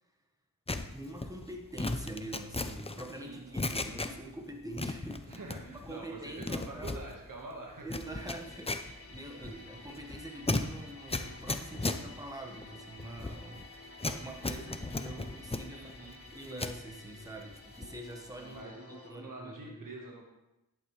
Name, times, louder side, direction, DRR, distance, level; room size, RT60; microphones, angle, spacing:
sound 1, 0.7-4.4 4.7-5.9 6.2-16.8 17.2-18.1 18.3-18.6, left 2 dB, 15° left, 0.6 m, -37 dB
voice 1, 0.9-5.4 5.6-6.9 7.8-15.9 16.3-19.9, right 1 dB, 10° right, 2 dB, 1.5 m, -45 dB
voice 2, 3.1-3.7 5.3-8.2 15.7-16.2 18.4-20.2, right 2 dB, 65° right, -1 dB, 1.7 m, -46 dB
sound 2, 8.0-19.1, left 2 dB, 40° left, 1.5 m, -52 dB
11.0 x 8.8 x 3.3 m, 0.95 s
wide cardioid pair, 65°, 35 cm